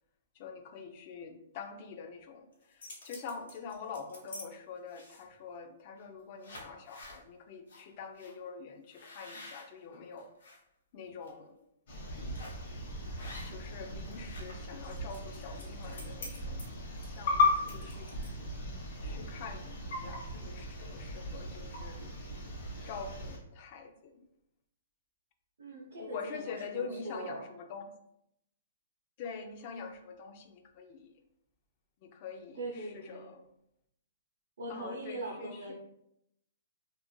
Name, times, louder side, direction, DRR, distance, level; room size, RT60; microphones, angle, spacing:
voice 1, 0.4-2.5 3.0-10.3 10.9-11.5 13.4-16.6 17.1-18.1 19.0-22.0 22.8-24.3 26.0-27.9 29.2-31.1 32.0-32.6 32.9-33.4 34.7-35.7, left 5 dB, 40° left, 5 dB, 0.3 m, -45 dB
sound 1, 2.5-4.5 4.9-5.4 6.0-6.1 6.4-7.2 7.7-7.8 8.2-8.3 8.9-10.6 11.0-11.3 12.3-12.7 13.2-13.8 14.0-18.5, left 2 dB, 85° left, 0.8 m, -49 dB
sound 2, 11.9-23.4, left 2 dB, 55° left, 0.8 m, -36 dB
voice 2, 25.6-27.5 32.5-33.3 34.6-35.7, right 2 dB, 75° right, -5 dB, 0.5 m, -41 dB
2.4 x 2.0 x 3.0 m, 0.78 s
hypercardioid pair, 150°, 0 cm